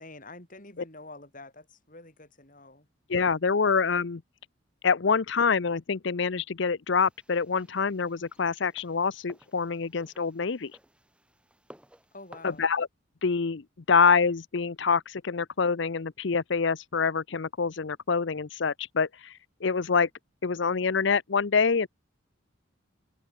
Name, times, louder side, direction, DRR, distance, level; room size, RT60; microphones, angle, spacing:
voice 1, 0.0-2.9 12.1-12.7, left 2 dB, 40° left, 6.1 m, -47 dB
voice 2, 3.1-4.2 4.8-10.7 12.4-12.9 13.2-19.3 19.6-20.1 20.4-21.9, left 5 dB, 65° left, 0.6 m, -26 dB
sound 1, 6.9-12.6, right 1 dB, 5° right, 3.9 m, -56 dB
open air
head